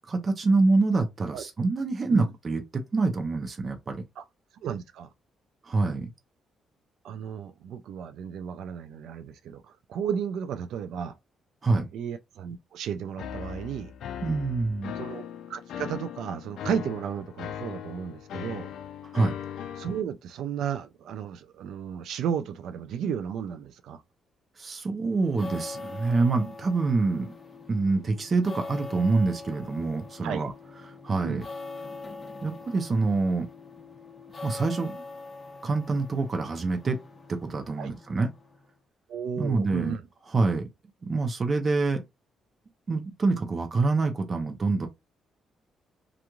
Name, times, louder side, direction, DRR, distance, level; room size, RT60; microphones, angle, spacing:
voice 1, 0.1-4.0 5.7-6.1 11.6-11.9 14.2-14.9 19.1-19.3 24.6-27.3 27.7-30.5 31.0-31.4 32.4-33.5 34.4-35.0 35.6-37.0 37.3-38.3 39.4-40.0 40.3-40.7 41.0-42.0 42.9-44.9, right 3 dB, 40° right, 0.6 m, -26 dB
voice 2, 4.6-5.1 7.0-11.1 11.9-13.9 14.9-15.2 15.5-18.7 19.8-24.0 30.2-30.4 31.2-31.5 37.8-37.9 39.1-40.0, right 8 dB, 80° right, 0.3 m, -33 dB
sound 1, 13.2-20.0, left 9 dB, 80° left, 0.4 m, -39 dB
sound 2, 25.1-38.7, left 3 dB, 25° left, 1.0 m, -43 dB
3.0 x 2.4 x 2.3 m
cardioid pair, 90°, 0 cm